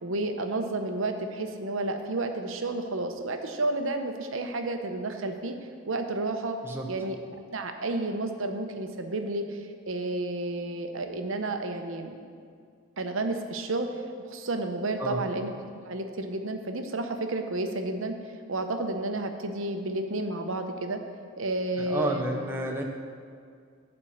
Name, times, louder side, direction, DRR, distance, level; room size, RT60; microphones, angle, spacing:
voice 1, 0.0-5.6 5.9-6.6 6.9-7.2 7.5-12.3 13.0-13.9 14.2-18.2 18.5-21.0 21.4-22.2, right 2 dB, 70° right, 6 dB, 0.9 m, -31 dB
voice 2, 21.8-22.8, right 1 dB, 10° right, 1 dB, 0.9 m, -30 dB
11.5 x 4.4 x 7.9 m, 2.2 s
head